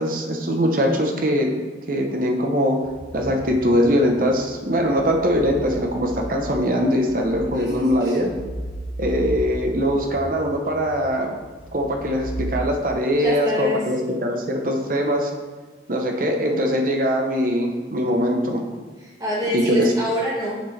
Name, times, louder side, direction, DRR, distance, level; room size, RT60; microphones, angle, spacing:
voice 1, 0.0-1.5 1.9-2.8 3.1-8.3 9.0-11.3 11.7-15.3 15.9-18.6 19.5-19.9, equal, 50° right, 2 dB, 0.8 m, -22 dB
sound 1, 2.8-12.5, right 1 dB, 15° left, 0.8 m, -36 dB
voice 2, 7.4-8.2 13.2-13.9 19.0-20.6, equal, 20° right, -6 dB, 1.7 m, -26 dB
6.9 x 6.0 x 3.3 m, 1.4 s
head